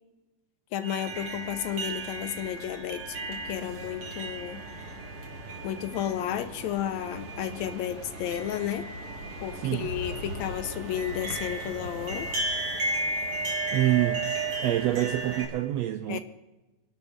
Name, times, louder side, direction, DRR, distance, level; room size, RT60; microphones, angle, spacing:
voice 1, 0.7-4.6 5.6-8.9 9.4-12.3 16.1-16.2, left 11 dB, 75° left, 11 dB, 1.8 m, -32 dB
sound 1, 0.8-15.4, right 2 dB, 50° right, 3.4 m, -35 dB
voice 2, 13.7-14.3 14.6-16.2, right 14 dB, 80° right, 10 dB, 1.5 m, -26 dB
25.5 x 11.5 x 3.6 m, 1.1 s
omnidirectional pair, 3.5 m